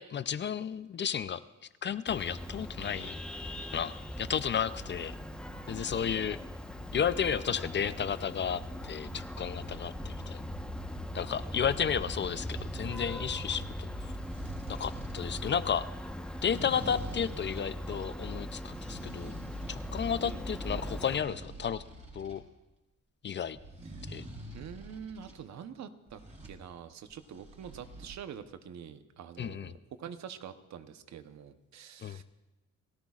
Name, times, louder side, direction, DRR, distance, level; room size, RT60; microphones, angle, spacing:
voice 1, 0.0-1.4 1.8-3.2 3.7-5.2 5.7-6.4 6.9-10.4 11.1-14.1 14.7-15.8 16.4-19.4 19.7-21.8 22.1-22.4 23.2-23.6 24.1-24.2 29.4-29.7 32.0-32.2, left 8 dB, 40° left, 14 dB, 0.5 m, -33 dB
Vehicle horn car horn honking, 2.1-21.2, equal, 5° left, 1.1 m, -40 dB
voice 2, 5.5-5.8 20.2-20.6 23.8-24.2 24.5-32.2, right 8 dB, 65° right, 10 dB, 1.0 m, -46 dB
sound 1, 14.1-15.6 16.3-17.7 18.4-20.0 20.3-22.4 23.5-25.4 26.1-26.6 27.1-28.1, right 1 dB, 25° right, 4.0 m, -46 dB
29.0 x 13.5 x 2.4 m, 1.1 s
cardioid pair, 90°, 30 cm